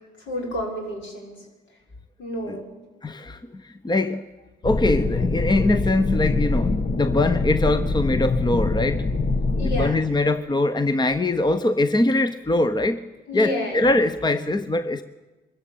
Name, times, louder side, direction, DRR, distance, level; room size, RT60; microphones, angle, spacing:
voice 1, 0.2-1.4 2.2-2.8 9.5-10.0 13.3-13.8, left 1 dB, 65° left, 6.1 m, -30 dB
voice 2, 3.0-4.2 4.6-9.0 9.6-13.0 13.3-15.0, left 2 dB, 20° left, 1.0 m, -22 dB
sound 1, 4.6-9.9, left 3 dB, 40° left, 1.4 m, -24 dB
23.0 x 14.0 x 8.7 m
hypercardioid pair, 45°, 21 cm